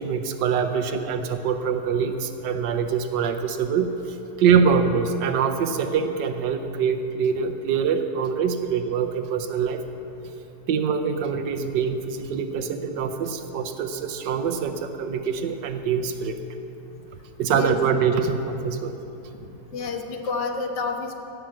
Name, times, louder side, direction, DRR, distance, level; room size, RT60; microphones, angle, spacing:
voice 1, 0.0-3.9 4.4-9.8 10.7-16.3 17.4-19.0, right 6 dB, 80° right, 7 dB, 1.4 m, -24 dB
voice 2, 17.5-17.8 19.7-21.1, left 4 dB, 75° left, 4 dB, 1.6 m, -29 dB
15.5 x 5.9 x 7.5 m, 2.9 s
omnidirectional pair, 1.9 m